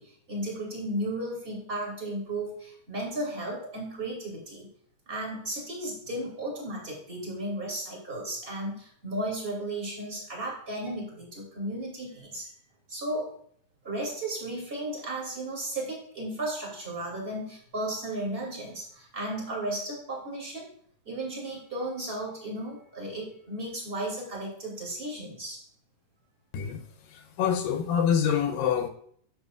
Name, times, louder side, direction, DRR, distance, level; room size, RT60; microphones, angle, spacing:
voice 1, 0.0-4.7 5.1-12.5 12.9-13.3 13.8-20.7 21.0-25.6, right 1 dB, 20° right, -3 dB, 2.5 m, -34 dB
voice 2, 27.1-28.9, left 8 dB, 85° left, 4 dB, 2.5 m, -26 dB
9.6 x 7.1 x 2.4 m, 0.63 s
omnidirectional pair, 4.0 m